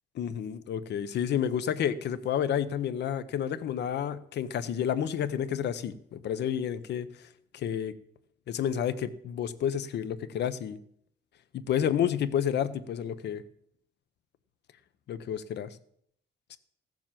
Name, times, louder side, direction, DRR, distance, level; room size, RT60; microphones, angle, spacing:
voice 1, 0.1-7.9 8.5-10.8 11.5-13.4 15.1-15.8 16.5-16.6, left 9 dB, 70° left, 14 dB, 0.9 m, -30 dB
15.0 x 7.2 x 7.5 m, 0.70 s
cardioid pair, 170°, 19 cm